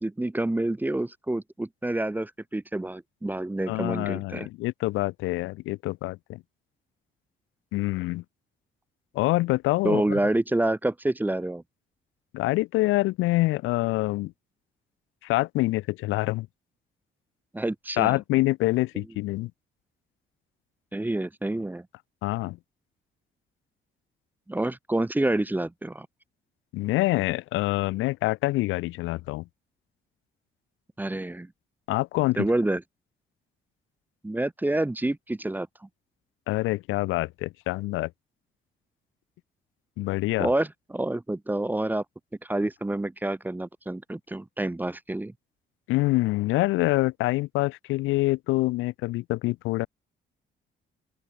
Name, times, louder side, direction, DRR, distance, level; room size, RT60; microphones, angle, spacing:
voice 1, 0.0-4.5 9.8-11.6 17.5-18.2 18.9-19.0 20.9-21.9 24.5-26.1 31.0-31.5 32.4-32.8 34.2-35.9 40.4-42.0 42.4-45.3, right 1 dB, 10° right, 0.7 m, -28 dB
voice 2, 3.7-6.4 7.7-8.2 9.1-10.2 12.3-14.3 15.2-16.5 18.0-19.5 22.2-22.6 26.7-29.4 31.9-32.4 36.5-38.1 40.0-40.5 45.9-49.9, left 19 dB, 85° left, 0.4 m, -26 dB
open air
cardioid pair, 90°, 20 cm